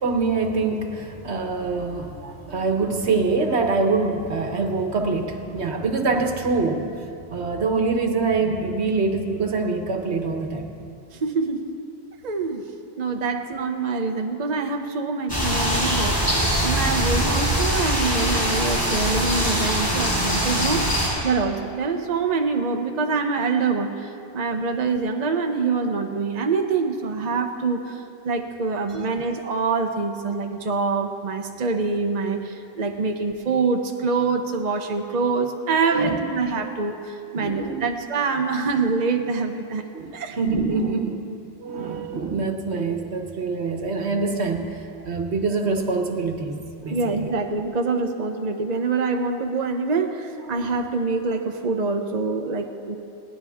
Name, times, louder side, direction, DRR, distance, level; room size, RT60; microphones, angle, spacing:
voice 1, 0.0-7.0 7.3-10.8 35.8-36.2 37.3-37.9 39.9-41.2 41.6-46.5 46.8-47.0 50.6-50.7, right 4 dB, 75° right, 4 dB, 1.5 m, -25 dB
voice 2, 11.1-11.6 12.2-39.9 40.1-40.4 46.9-53.0, right 4 dB, 40° right, 4 dB, 0.9 m, -25 dB
sound 1, 15.3-21.1, equal, 20° left, 5.1 m, -22 dB
20.5 x 17.0 x 3.6 m, 2.6 s
omnidirectional pair, 1.1 m